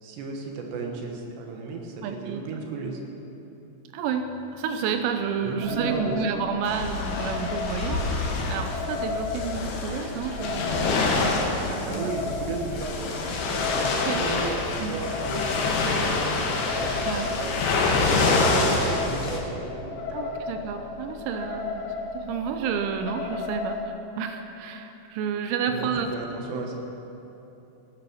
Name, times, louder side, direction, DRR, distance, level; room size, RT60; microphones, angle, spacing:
voice 1, 0.0-3.0 5.4-6.2 11.8-13.2 13.5-17.5 18.2-20.3 25.7-26.8, right 3 dB, 65° right, 1 dB, 3.1 m, -35 dB
voice 2, 2.0-2.4 3.9-10.8 11.7-12.3 14.1-14.3 14.8-15.0 17.0-17.3 20.1-26.4, right 6 dB, 85° right, 6 dB, 3.5 m, -30 dB
sound 1, 5.6-23.9, left 4 dB, 90° left, 2.1 m, -35 dB
sound 2, 6.7-19.4, left 3 dB, 65° left, 3.0 m, -26 dB
17.5 x 10.5 x 6.3 m, 3.0 s
omnidirectional pair, 6.0 m